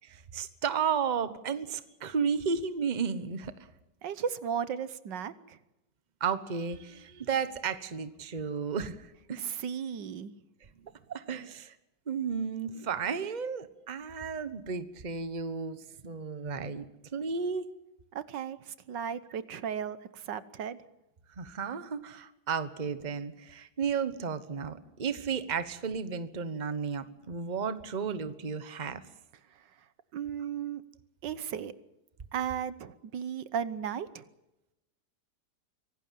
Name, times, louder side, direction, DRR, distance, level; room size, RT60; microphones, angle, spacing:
voice 1, 0.0-3.5 6.2-9.4 10.8-11.7 12.1-15.8 16.0-16.8 17.1-17.7 21.4-29.0, right 6 dB, 30° right, 13 dB, 1.2 m, -33 dB
voice 2, 4.0-5.6 9.4-10.3 18.1-20.8 29.5-29.6 30.1-30.8 31.2-31.7 32.3-34.2, right 8 dB, 80° right, 15 dB, 1.7 m, -35 dB
25.0 x 17.5 x 7.6 m, 0.93 s
omnidirectional pair, 1.9 m